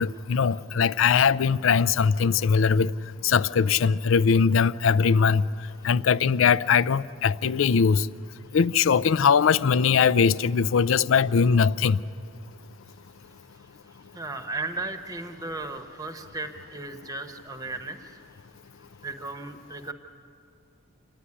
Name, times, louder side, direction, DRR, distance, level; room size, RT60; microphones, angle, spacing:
voice 1, 0.0-2.9 3.2-5.5 5.8-8.1 8.5-12.0, left 6 dB, 70° left, 0.4 m, -21 dB
voice 2, 14.1-18.1 19.0-19.9, right 3 dB, 15° right, 0.9 m, -35 dB
27.5 x 11.5 x 9.7 m
head